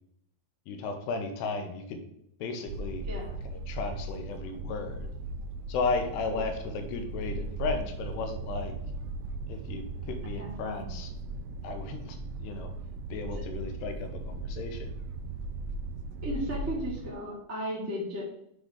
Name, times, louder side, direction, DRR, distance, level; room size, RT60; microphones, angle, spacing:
voice 1, 0.7-2.0 2.4-3.0 3.5-5.1 5.7-8.8 9.5-11.1 11.6-12.7 13.1-14.9, left 4 dB, 80° left, 5 dB, 3.0 m, -34 dB
sound 1, 2.7-17.1, right 2 dB, 85° right, 2.6 m, -37 dB
voice 2, 3.0-3.4 10.3-10.9 16.2-18.2, equal, 5° right, -5 dB, 1.1 m, -35 dB
7.9 x 3.9 x 5.0 m, 0.74 s
omnidirectional pair, 4.8 m